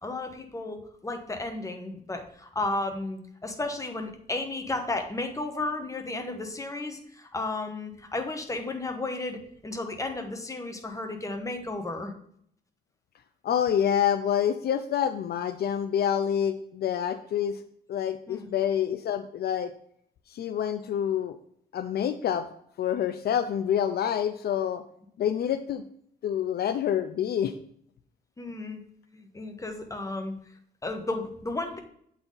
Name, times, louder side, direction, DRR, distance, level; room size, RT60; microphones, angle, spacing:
voice 1, 0.0-12.1 18.3-18.5 28.4-28.8 29.1-30.3 30.8-31.8, left 2 dB, 20° left, 5 dB, 1.1 m, -33 dB
voice 2, 13.4-17.6 17.9-19.7 20.3-21.4 21.7-22.5 22.8-24.8 25.2-25.8 26.2-27.6, left 9 dB, 70° left, 10 dB, 0.4 m, -27 dB
7.8 x 4.1 x 3.8 m, 0.67 s
cardioid pair, 95°, 17 cm